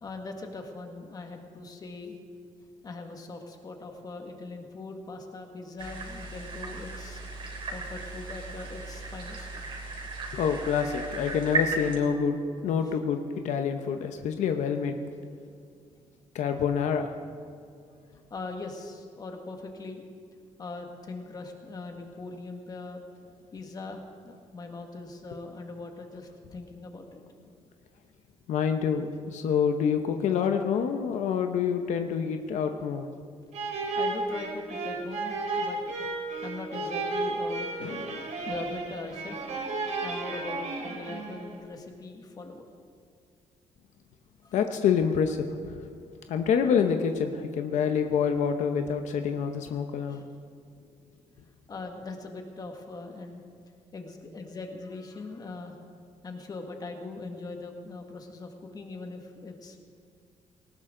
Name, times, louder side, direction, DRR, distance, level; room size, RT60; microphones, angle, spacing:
voice 1, 0.0-2.2 2.8-7.2 7.7-9.5 12.8-13.0 18.3-20.0 20.6-23.0 23.5-27.2 34.0-36.0 36.4-37.7 38.5-39.4 39.9-42.7 44.4-44.5 50.1-50.2 51.7-53.4 53.9-55.8 56.2-59.8, left 3 dB, 30° left, 3 dB, 1.8 m, -41 dB
sound 1, 5.8-12.0, right 2 dB, 45° right, 3.3 m, -35 dB
voice 2, 10.3-12.4 12.6-15.0 16.3-17.1 28.5-33.1 37.8-38.2 44.5-45.8 46.3-50.2, left 7 dB, 75° left, 6 dB, 0.9 m, -27 dB
sound 2, 33.5-41.6, right 3 dB, 65° right, 3.6 m, -33 dB
19.0 x 19.0 x 3.9 m, 2.4 s
cardioid pair, 155°, 12 cm